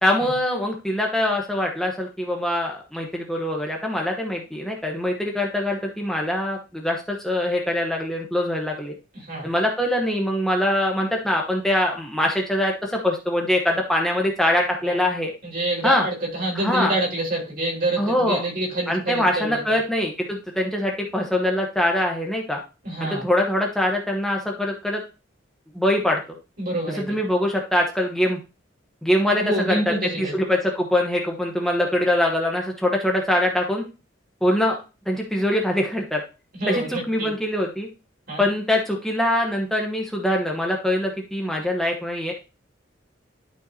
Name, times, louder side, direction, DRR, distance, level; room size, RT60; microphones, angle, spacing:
voice 1, 0.0-8.9 9.4-15.3 15.8-16.1 16.6-16.9 18.0-18.4 18.9-22.6 23.0-25.0 25.7-26.2 26.9-28.4 29.0-33.8 34.4-34.8 35.1-36.2 36.7-37.9 38.4-42.3, left 1 dB, ahead, 0 dB, 1.0 m, -23 dB
voice 2, 15.4-19.6 22.8-23.2 26.6-27.0 29.3-30.3 36.5-37.3 38.3-38.5, right 1 dB, 50° right, -3 dB, 4.7 m, -27 dB
12.0 x 5.5 x 2.8 m, 0.30 s
head